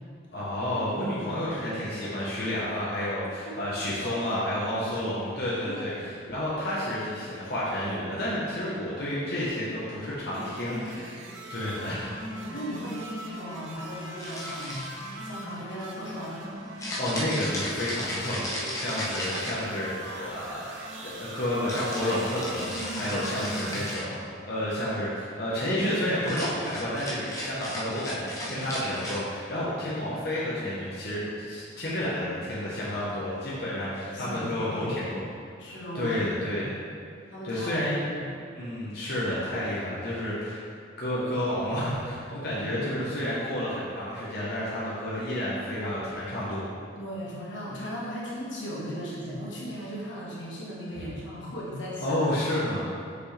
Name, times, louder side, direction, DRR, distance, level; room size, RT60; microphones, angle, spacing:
voice 1, 0.3-5.9 6.3-11.2 11.5-12.1 17.0-20.6 21.2-35.2 35.9-36.8 37.4-38.0 38.5-40.7 41.0-46.6 51.0-51.1 52.0-52.8, left 1 dB, 55° left, -9 dB, 1.1 m, -30 dB
voice 2, 4.6-5.3 5.7-6.2 12.2-14.8 15.2-16.4 22.6-23.8 28.4-28.7 34.0-35.0 35.6-36.7 37.3-38.3 42.6-42.8 47.0-52.7, equal, 80° left, -6 dB, 1.6 m, -37 dB
sound 1, 10.3-23.9, right 1 dB, 85° right, 0.8 m, -41 dB
sound 2, 14.2-15.1 16.8-20.0 21.7-24.2 26.2-29.2, left 1 dB, 15° left, 0.9 m, -35 dB
6.1 x 5.6 x 3.3 m, 2.2 s
head